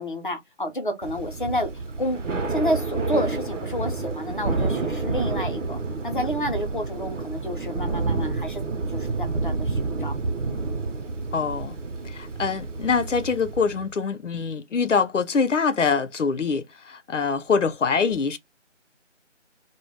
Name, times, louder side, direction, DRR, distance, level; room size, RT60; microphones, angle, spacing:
voice 1, 0.0-1.7 2.0-2.2 2.5-5.8 6.0-10.1 10.4-10.7, equal, 45° left, 0.6 m, -30 dB
Thunder / Rain, 1.0-13.9, right 3 dB, 85° right, 0.6 m, -29 dB
voice 2, 11.3-11.8 12.0-18.4, left 5 dB, 85° left, 0.6 m, -24 dB
2.2 x 2.1 x 3.1 m
figure-of-eight pair, 160°, 36 cm